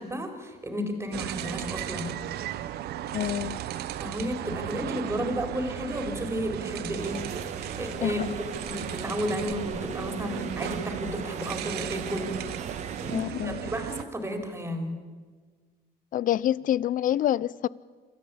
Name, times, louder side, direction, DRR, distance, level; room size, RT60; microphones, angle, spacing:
voice 1, 0.0-2.1 4.0-7.2 7.8-8.2 8.7-12.3 13.0-14.9, equal, 15° right, 4.3 m, -32 dB
sound 1, 1.1-14.0, right 12 dB, 70° right, 1.0 m, -36 dB
voice 2, 3.1-3.6 8.0-8.3 13.1-13.7 16.1-17.7, left 12 dB, 55° left, 0.6 m, -27 dB
sound 2, 7.0-13.2, right 5 dB, 45° right, 2.3 m, -39 dB
27.5 x 13.5 x 8.6 m
cardioid pair, 110°, 17 cm